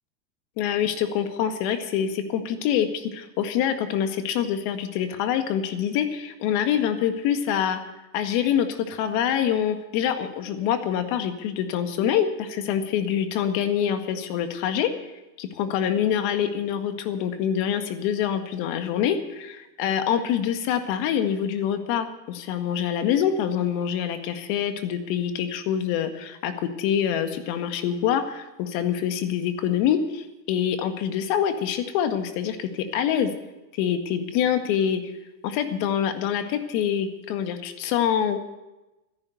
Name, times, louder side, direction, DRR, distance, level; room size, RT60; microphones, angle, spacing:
voice 1, 0.6-7.8 8.1-14.9 15.4-33.3 33.8-35.0 35.4-38.4, left 9 dB, 45° left, 8 dB, 1.9 m, -25 dB
13.5 x 11.0 x 8.0 m, 1.0 s
supercardioid pair, 135°, 50 cm